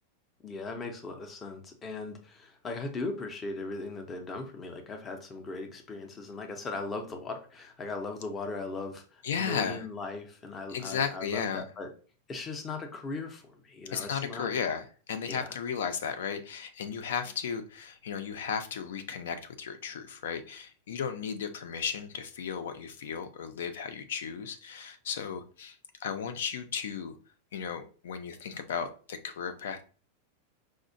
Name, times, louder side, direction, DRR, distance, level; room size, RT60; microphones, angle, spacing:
voice 1, 0.4-11.9 12.3-14.5 15.3-15.5, left 3 dB, 15° left, 4 dB, 0.4 m, -38 dB
voice 2, 9.2-9.9 10.7-11.7 13.9-27.2 27.5-29.8, left 7 dB, 85° left, 8 dB, 0.5 m, -35 dB
4.8 x 2.1 x 2.5 m, 0.39 s
supercardioid pair, 180°, 0 cm